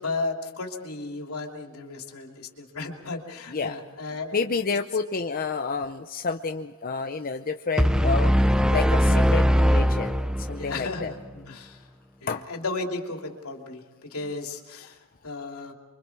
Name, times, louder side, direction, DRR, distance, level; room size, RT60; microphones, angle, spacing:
voice 1, 0.0-4.4 10.6-11.2 11.5-11.8 12.2-13.8 14.1-15.0 15.2-15.7, left 3 dB, 80° left, 2 dB, 3.2 m, -34 dB
voice 2, 4.3-8.3 8.7-11.1 11.5-11.6 12.3-12.4, left 4 dB, 40° left, 5 dB, 0.7 m, -29 dB
sound 1, 7.8-10.8, equal, 5° right, 0.7 m, -20 dB
29.0 x 24.5 x 4.7 m, 1.3 s
head